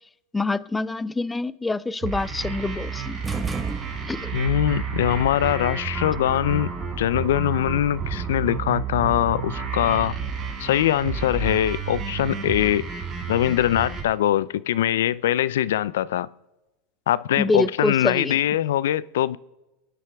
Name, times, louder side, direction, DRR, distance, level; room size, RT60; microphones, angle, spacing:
voice 1, 0.3-3.2 4.1-4.3 17.4-18.4, left 3 dB, 10° left, 0.4 m, -26 dB
sound 1, 2.0-14.0, right 5 dB, 30° right, 3.5 m, -31 dB
sound 2, 3.2-4.5, right 4 dB, 10° right, 1.0 m, -31 dB
voice 2, 4.3-6.7 7.0-10.1 10.6-12.8 13.3-16.3 17.1-19.4, left 12 dB, 85° left, 0.4 m, -22 dB
28.5 x 10.5 x 3.4 m
supercardioid pair, 125°, 0 cm